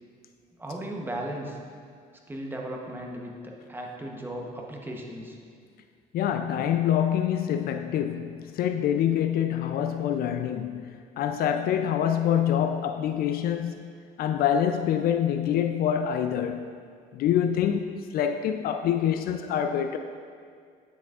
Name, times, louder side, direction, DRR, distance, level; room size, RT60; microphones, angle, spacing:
voice 1, 0.6-1.6 2.3-5.4, right 1 dB, 10° right, 0.9 m, -36 dB
voice 2, 6.1-13.9 14.2-16.7 17.1-20.0, left 9 dB, 60° left, 0.4 m, -26 dB
9.2 x 6.1 x 2.4 m
cardioid pair, 110°, 17 cm